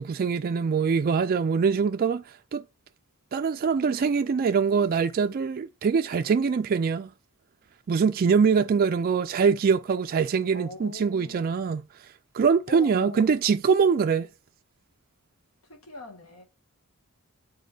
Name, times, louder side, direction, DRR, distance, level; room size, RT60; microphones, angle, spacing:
voice 1, 0.0-2.2 2.5-2.6 3.3-7.1 7.9-11.8 12.3-14.3, right 6 dB, 40° right, 0.3 m, -23 dB
voice 2, 10.5-11.6 12.7-13.4 15.6-16.4, left 2 dB, 70° left, 1.7 m, -42 dB
10.5 x 3.7 x 2.7 m
head